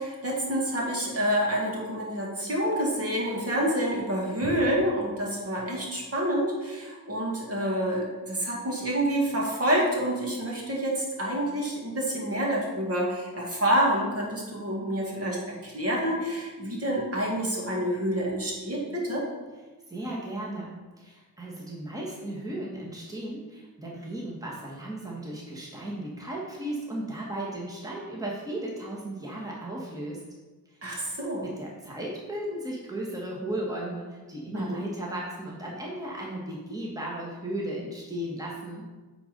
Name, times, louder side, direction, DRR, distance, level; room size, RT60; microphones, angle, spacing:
voice 1, 0.0-15.4 15.6-19.2 30.8-31.5 34.5-34.8, right 1 dB, 40° right, -2 dB, 2.2 m, -28 dB
voice 2, 19.9-30.2 31.4-38.9, right 1 dB, 10° right, -4 dB, 1.6 m, -35 dB
8.3 x 4.0 x 5.2 m, 1.3 s
cardioid pair, 70°, 38 cm